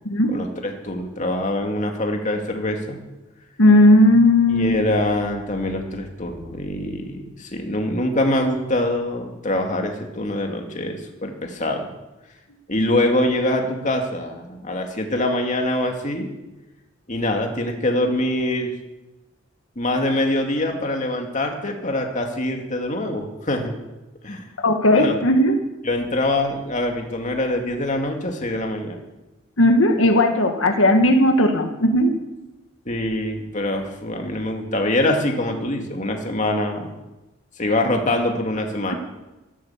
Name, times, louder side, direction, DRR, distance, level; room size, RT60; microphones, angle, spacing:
voice 1, 0.3-3.0 4.5-11.9 12.7-16.3 17.1-18.7 19.8-23.7 24.2-24.5 24.9-25.2 25.8-29.0 32.9-36.9 37.6-38.9, left 1 dB, 40° left, 2 dB, 2.3 m, -24 dB
voice 2, 3.6-4.7 24.6-25.6 29.6-32.1, left 1 dB, 90° left, 5 dB, 1.7 m, -16 dB
14.0 x 11.5 x 7.3 m, 1.0 s
head